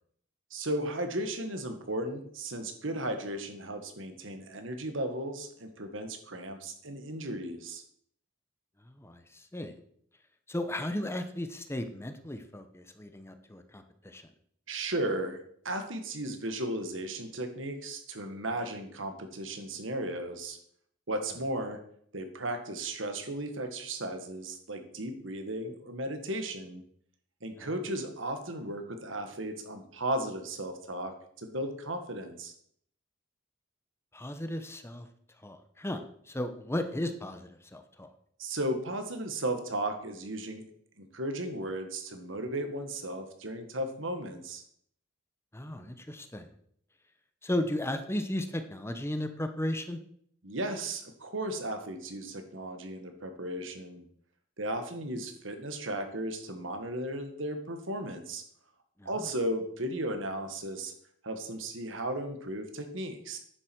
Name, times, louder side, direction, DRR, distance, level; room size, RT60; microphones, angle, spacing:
voice 1, 0.5-7.8 14.7-15.4 15.6-20.6 21.1-21.8 22.1-26.8 27.4-32.5 38.4-40.6 41.0-44.6 50.4-54.0 54.6-58.4 59.1-60.9 61.2-63.4, right 1 dB, 80° right, 6 dB, 1.8 m, -35 dB
voice 2, 10.5-14.2 27.6-27.7 34.1-35.1 35.4-38.1 45.5-46.5 47.4-50.0 59.0-59.1, left 1 dB, 15° left, 8 dB, 0.9 m, -35 dB
10.0 x 7.5 x 6.1 m, 0.64 s
head